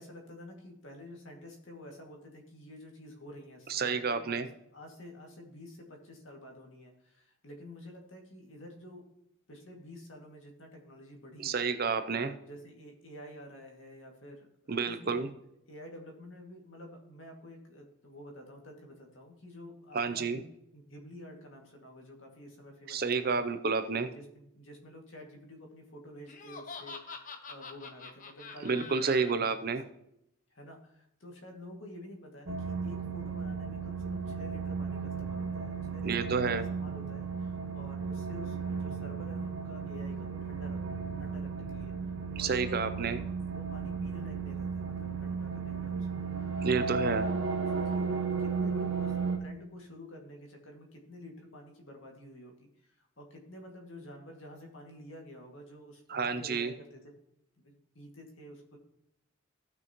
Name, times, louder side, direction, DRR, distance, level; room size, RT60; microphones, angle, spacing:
voice 1, 0.0-4.4 4.7-9.0 9.5-11.6 12.1-15.3 15.7-23.4 24.1-29.8 30.5-40.8 41.2-41.9 42.4-46.2 47.0-47.3 47.5-57.0 57.6-58.8, left 1 dB, 65° left, 1 dB, 2.2 m, -49 dB
voice 2, 3.7-4.5 11.4-12.3 14.7-15.3 19.9-20.4 22.9-24.1 28.6-29.8 36.0-36.7 42.4-43.2 46.6-47.2 56.1-56.7, right 5 dB, 45° right, 10 dB, 0.6 m, -30 dB
Laughter, 26.3-29.3, left 4 dB, 40° left, 0.8 m, -45 dB
sound 1, 32.5-49.4, right 5 dB, 60° right, 1.4 m, -34 dB
16.0 x 6.1 x 3.0 m, 0.79 s
head